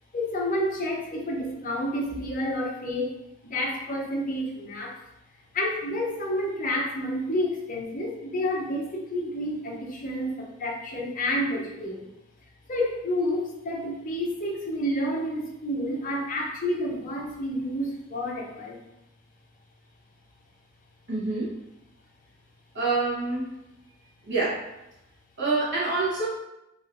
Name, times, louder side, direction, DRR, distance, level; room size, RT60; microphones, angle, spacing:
voice 1, 0.1-3.1 3.4-5.0 5.5-12.1 12.7-18.8, left 1 dB, 40° left, -2 dB, 0.6 m, -29 dB
voice 2, 21.1-21.5 22.7-23.5 24.2-24.6 25.4-26.3, right 3 dB, 55° right, -7 dB, 1.1 m, -26 dB
3.0 x 2.9 x 2.6 m, 0.87 s
head